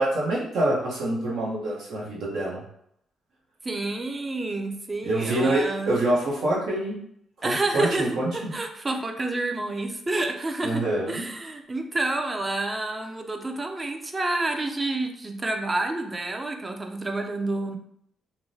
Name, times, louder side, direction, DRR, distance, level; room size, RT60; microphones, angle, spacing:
voice 1, 0.0-2.6 5.0-7.0 7.4-8.5 10.6-11.2, right 1 dB, 75° right, -5 dB, 0.9 m, -26 dB
voice 2, 3.6-5.9 7.4-17.8, right 2 dB, 30° right, 4 dB, 0.4 m, -29 dB
2.9 x 2.1 x 2.6 m, 0.71 s
supercardioid pair, 65°, 0 cm